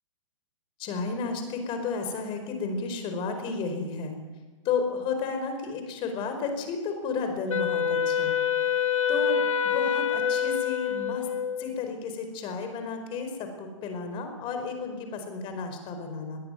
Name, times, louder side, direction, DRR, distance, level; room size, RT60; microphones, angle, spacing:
voice 1, 0.8-4.2 4.6-8.4 8.6-8.7 9.1-9.4 9.7-11.3 11.6-16.4, left 4 dB, 30° left, 6 dB, 4.7 m, -32 dB
Wind instrument woodwind instrument, 7.5-11.8, left 8 dB, 75° left, 1.4 m, -26 dB
21.5 x 14.0 x 9.3 m, 1.3 s
hypercardioid pair, 140°, 17 cm